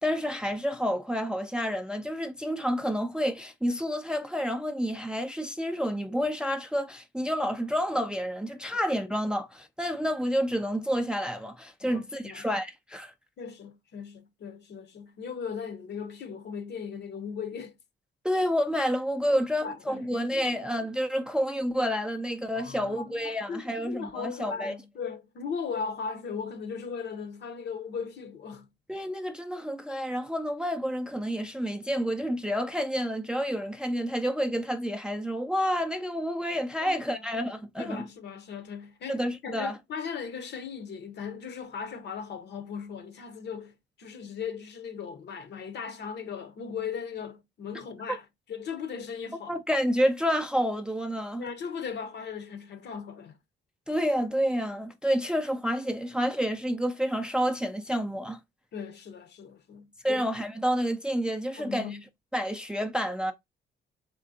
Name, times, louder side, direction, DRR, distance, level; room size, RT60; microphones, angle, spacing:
voice 1, 0.0-13.1 18.2-24.7 28.9-38.0 39.1-39.8 48.1-48.2 49.5-51.5 53.9-58.4 60.0-62.0 62.3-63.3, equal, 5° right, 0.4 m, -29 dB
voice 2, 11.8-12.5 13.4-17.7 19.3-20.5 22.5-28.7 36.8-37.3 37.8-43.7 44.0-49.5 51.4-53.4 58.7-60.2 61.6-62.0, left 6 dB, 60° left, 0.8 m, -38 dB
3.6 x 3.3 x 2.6 m
cardioid pair, 90°, 20 cm